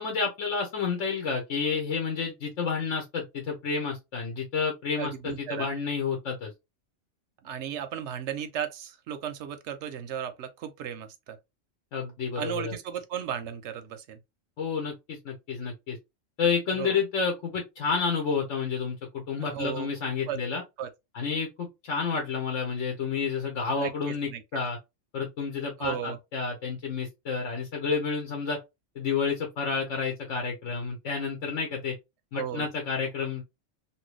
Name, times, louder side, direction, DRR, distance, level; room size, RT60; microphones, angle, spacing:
voice 1, 0.0-6.5 11.9-12.7 14.6-16.0 16.4-20.6 21.1-24.8 25.1-28.6 29.0-31.9 32.3-33.4, left 5 dB, 70° left, 1.2 m, -30 dB
voice 2, 5.0-5.7 7.4-11.4 12.4-14.2 16.8-17.0 19.4-20.4 20.8-20.9 23.8-24.4 25.8-26.2 32.3-32.7, right 9 dB, 70° right, 0.8 m, -35 dB
2.9 x 2.7 x 3.0 m
omnidirectional pair, 1.4 m